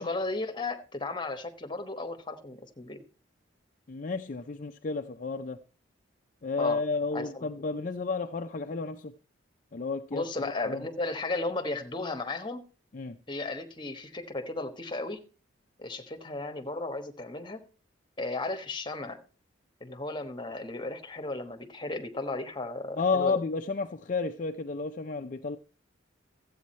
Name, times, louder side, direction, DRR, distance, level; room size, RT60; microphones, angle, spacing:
voice 1, 0.0-3.0 6.6-6.8 7.1-7.5 10.1-12.6 13.3-15.2 15.8-17.6 18.2-19.2 19.8-23.4, left 2 dB, 25° left, 1.2 m, -35 dB
voice 2, 3.9-5.6 6.4-9.2 9.7-10.9 12.9-13.2 23.0-25.6, left 4 dB, 45° left, 0.5 m, -32 dB
13.5 x 8.4 x 4.2 m
head